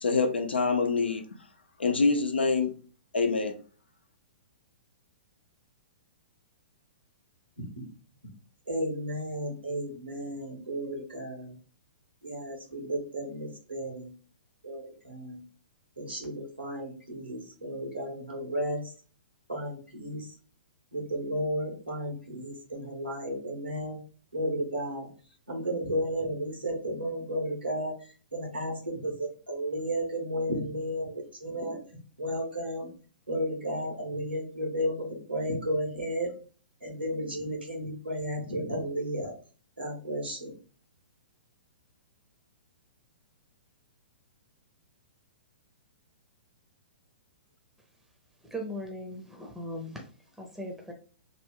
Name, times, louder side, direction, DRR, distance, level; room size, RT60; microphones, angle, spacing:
voice 1, 0.0-1.2 1.8-2.8 3.1-3.5, left 4 dB, 80° left, 5 dB, 0.7 m, -25 dB
voice 2, 8.7-11.5 12.2-14.1 14.6-15.4 16.0-18.9 19.5-20.4 20.9-24.0 24.3-25.1 25.5-31.8 32.2-32.9 33.3-36.3 36.8-39.3 39.8-40.5, equal, 90° right, 0 dB, 1.5 m, -33 dB
voice 3, 48.4-50.1 50.4-50.9, equal, 5° right, 1 dB, 0.7 m, -38 dB
3.3 x 2.3 x 3.6 m, 0.38 s
figure-of-eight pair, 115°, 6 cm